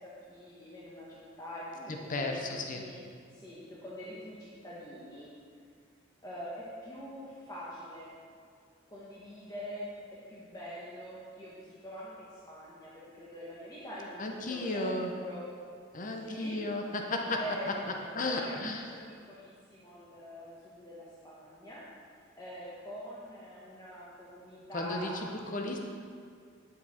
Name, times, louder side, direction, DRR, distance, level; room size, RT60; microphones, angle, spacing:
voice 1, 0.0-3.0 3.3-5.3 6.2-8.1 8.9-9.9 10.3-14.2 14.5-15.4 16.1-16.6 16.9-19.0 19.3-21.8 22.4-25.3, equal, 20° left, -8 dB, 1.2 m, -44 dB
voice 2, 1.9-2.8 14.2-15.1 15.9-17.7 18.1-18.8 24.7-25.8, left 2 dB, 45° left, 2 dB, 0.8 m, -34 dB
9.9 x 6.7 x 4.4 m, 2.2 s
head